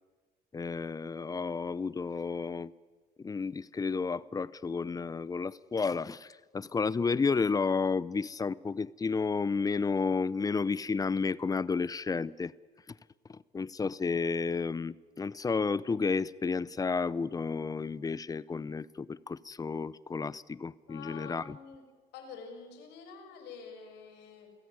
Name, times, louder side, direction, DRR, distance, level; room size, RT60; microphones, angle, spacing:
voice 1, 0.5-2.7 3.2-12.5 12.9-13.0 13.3-21.6, left 4 dB, 20° left, 0.7 m, -32 dB
voice 2, 20.8-21.9 22.1-24.5, left 5 dB, 90° left, 5.9 m, -47 dB
29.0 x 16.5 x 9.6 m
cardioid pair, 110°, 17 cm